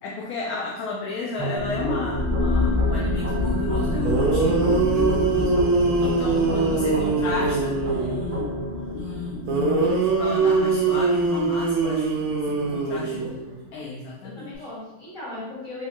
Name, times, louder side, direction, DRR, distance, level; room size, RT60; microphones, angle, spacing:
voice 1, 0.0-8.5 8.9-13.3 13.7-14.7, left 3 dB, 75° left, -2 dB, 1.0 m, -32 dB
sound 1, 1.4-10.4, equal, 20° right, 0.4 m, -32 dB
sound 2, 1.6-12.7, left 2 dB, 45° right, 0.9 m, -29 dB
sound 3, 3.8-3.9 4.0-8.2 9.5-13.5, right 4 dB, 80° right, 1.1 m, -23 dB
voice 2, 8.0-8.5 12.8-13.6 14.2-15.9, left 2 dB, 55° left, -9 dB, 2.1 m, -40 dB
4.1 x 2.3 x 2.9 m, 1.0 s
omnidirectional pair, 1.6 m